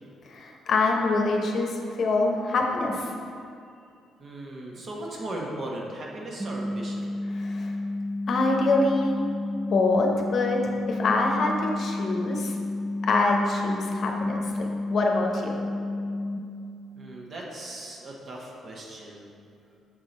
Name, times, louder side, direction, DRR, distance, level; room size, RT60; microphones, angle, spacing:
voice 1, 0.3-3.1 7.3-7.7 8.3-9.2 9.7-12.5 13.0-15.6, left 3 dB, 60° left, 1 dB, 0.8 m, -25 dB
voice 2, 4.2-7.1 16.9-19.3, right 1 dB, 50° right, -2 dB, 1.1 m, -37 dB
sound 1, 6.4-16.4, left 2 dB, 20° right, 0.5 m, -31 dB
6.4 x 3.7 x 4.1 m, 2.4 s
cardioid pair, 90°, 0 cm